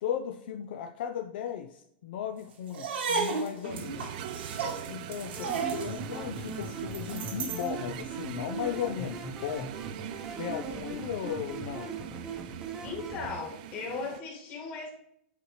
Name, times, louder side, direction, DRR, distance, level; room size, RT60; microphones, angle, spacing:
voice 1, 0.0-4.1 4.9-9.7 10.4-11.9, left 9 dB, 65° left, 5 dB, 0.6 m, -36 dB
sound 1, 2.7-7.7, right 5 dB, 85° right, 1.7 m, -34 dB
sound 2, 3.7-14.2, right 10 dB, 50° right, 0.5 m, -42 dB
sound 3, 5.4-13.3, right 3 dB, 10° right, 0.8 m, -40 dB
voice 2, 12.8-14.9, left 4 dB, 30° left, 0 dB, 1.9 m, -37 dB
8.2 x 4.2 x 3.1 m, 0.76 s
supercardioid pair, 160°, 6 cm